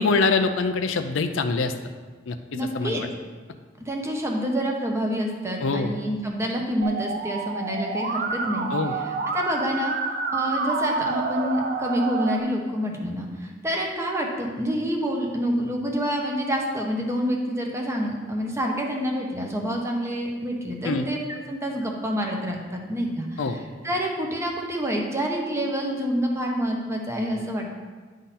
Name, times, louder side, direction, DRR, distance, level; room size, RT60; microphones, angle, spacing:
voice 1, 0.0-1.7 2.3-3.1 5.6-5.9 8.7-8.9 20.8-21.1 23.4-23.6, left 4 dB, 85° left, 8 dB, 0.5 m, -24 dB
voice 2, 2.5-3.0 3.8-9.9 10.3-21.2 21.5-27.8, equal, 15° right, 0 dB, 0.9 m, -27 dB
Musical instrument, 6.8-12.4, right 4 dB, 50° right, 0.6 m, -28 dB
10.0 x 3.8 x 4.1 m, 1.4 s
head